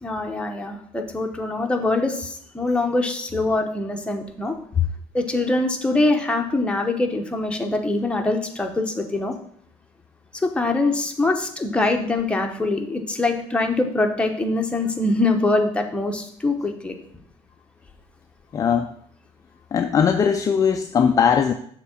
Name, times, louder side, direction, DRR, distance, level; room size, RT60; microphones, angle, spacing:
voice 1, 0.0-4.6 5.1-9.3 10.4-17.0, left 2 dB, 10° left, 3 dB, 0.9 m, -23 dB
voice 2, 18.5-18.9 19.7-21.5, left 7 dB, 30° left, 6 dB, 0.4 m, -19 dB
7.0 x 3.7 x 6.4 m, 0.64 s
cardioid pair, 120°, 12 cm